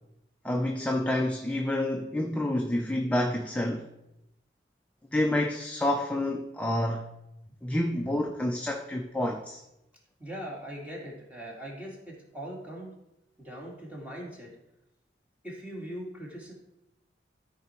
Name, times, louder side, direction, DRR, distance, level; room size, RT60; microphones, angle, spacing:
voice 1, 0.4-3.9 5.1-7.1 7.6-9.6, left 1 dB, 5° left, 0.5 m, -28 dB
voice 2, 10.2-12.9 13.4-14.5 15.4-16.5, right 1 dB, 10° right, 2.0 m, -40 dB
13.5 x 4.6 x 4.4 m
head